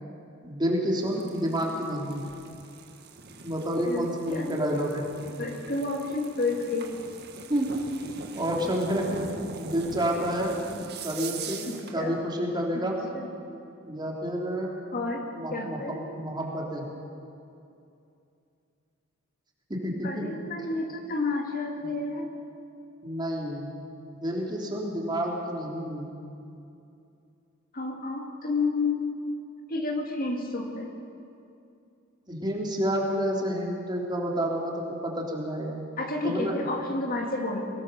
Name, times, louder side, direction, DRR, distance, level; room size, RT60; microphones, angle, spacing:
voice 1, 0.4-2.2 3.4-5.0 7.5-7.7 8.3-9.2 9.6-10.6 11.0-13.0 13.8-14.7 15.3-16.9 19.7-20.2 23.0-23.7 24.1-26.1 32.3-35.8 36.2-36.5, equal, 20° right, -2 dB, 3.4 m, -29 dB
sound 1, 1.0-12.0, right 4 dB, 50° right, 1.8 m, -42 dB
voice 2, 3.8-4.6 5.4-6.9 11.7-12.1 12.7-12.8 13.1-13.3 14.9-15.2 15.5-16.1 20.0-22.3 27.7-29.0 29.7-30.9 36.0-37.7, left 3 dB, 45° left, 2 dB, 2.4 m, -30 dB
23.5 x 18.5 x 6.9 m, 2.6 s
head